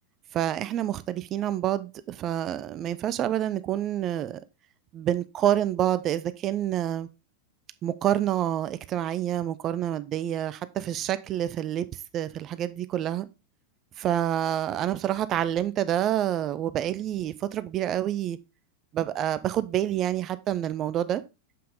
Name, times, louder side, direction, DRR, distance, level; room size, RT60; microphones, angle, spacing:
voice 1, 0.3-4.4 4.9-7.1 7.8-11.9 12.1-13.3 14.0-18.4 18.9-21.2, right 11 dB, 30° right, 0.6 m, -27 dB
7.4 x 5.7 x 3.9 m
figure-of-eight pair, 90°, 0 cm